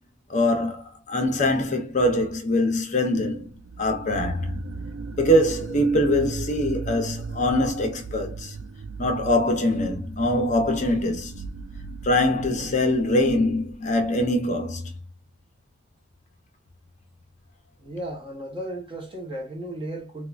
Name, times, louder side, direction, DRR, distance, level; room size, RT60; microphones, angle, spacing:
voice 1, 0.3-4.5 5.2-8.5 9.0-11.3 12.0-14.9, left 1 dB, 35° left, 0.8 m, -23 dB
sound 1, 3.4-14.1, right 4 dB, 75° right, 0.4 m, -37 dB
voice 2, 17.8-20.3, right 1 dB, 25° right, 0.9 m, -35 dB
4.5 x 2.3 x 2.4 m
head